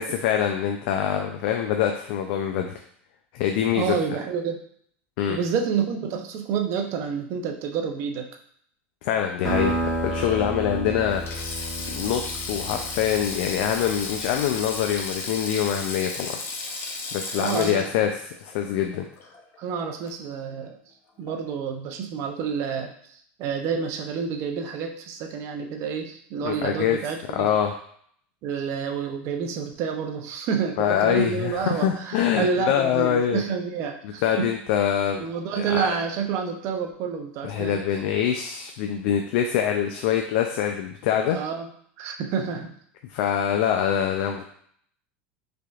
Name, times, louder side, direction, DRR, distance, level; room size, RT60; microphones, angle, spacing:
voice 1, 0.0-2.7 3.3-4.0 5.2-5.4 9.0-16.4 17.1-19.1 26.4-27.0 27.3-27.7 30.8-33.4 34.0-35.2 35.5-35.9 37.4-41.4 43.1-44.5, left 9 dB, 65° left, 4 dB, 0.3 m, -25 dB
voice 2, 3.7-4.6 5.3-8.3 17.3-17.9 19.6-20.8 21.2-22.9 23.4-27.5 28.4-34.5 35.2-37.8 41.3-41.7 42.0-42.7, right 6 dB, 50° right, 5 dB, 0.5 m, -29 dB
sound 1, 9.4-14.6, right 1 dB, 5° right, 1.2 m, -31 dB
Sink (filling or washing), 11.1-19.6 19.9-20.1 21.3-21.5, left 3 dB, 40° left, 0.7 m, -34 dB
3.7 x 3.4 x 2.3 m, 0.64 s
supercardioid pair, 125°, 6 cm